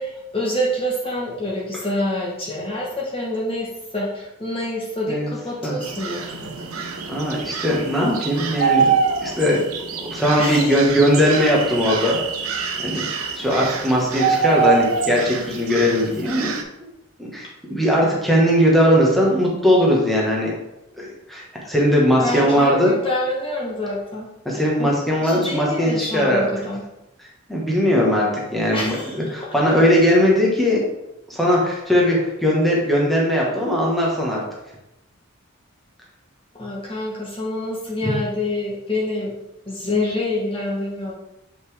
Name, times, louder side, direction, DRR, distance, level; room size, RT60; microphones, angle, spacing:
voice 1, 0.0-6.9 10.4-10.8 22.2-24.3 24.8-24.9 25.2-26.8 28.7-29.2 36.6-39.3 39.7-41.1, left 1 dB, 25° left, -4 dB, 1.2 m, -26 dB
sound 1, 5.8-16.6, right 6 dB, 90° right, 0.8 m, -25 dB
voice 2, 7.1-8.9 9.2-12.2 12.8-13.1 13.4-16.5 17.2-20.5 21.0-22.9 24.4-26.5 27.5-30.8 31.3-34.4, equal, ahead, -4 dB, 1.3 m, -19 dB
6.7 x 5.3 x 3.5 m, 0.92 s
head